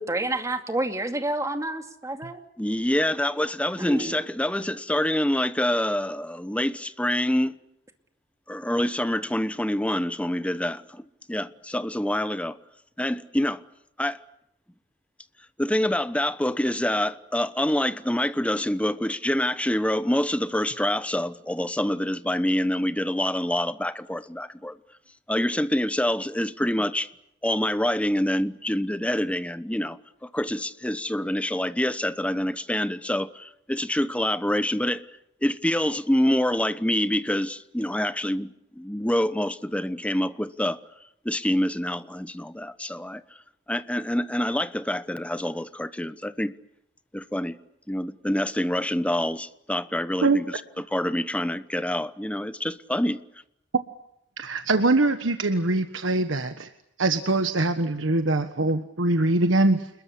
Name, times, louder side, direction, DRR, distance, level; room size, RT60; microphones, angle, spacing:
voice 1, 0.1-2.4 3.8-4.2, right 1 dB, 15° right, 2.3 m, -29 dB
voice 2, 2.6-7.5 8.5-12.6 13.0-13.6 14.0-14.2 15.6-24.8 25.3-27.1 27.4-35.0 35.4-40.8 41.2-43.2 43.7-46.5 47.1-47.6 47.9-50.5 50.8-53.2, left 1 dB, 5° left, 1.0 m, -26 dB
voice 3, 54.4-56.7 57.0-59.9, right 2 dB, 85° right, 1.4 m, -23 dB
28.5 x 21.5 x 8.3 m
head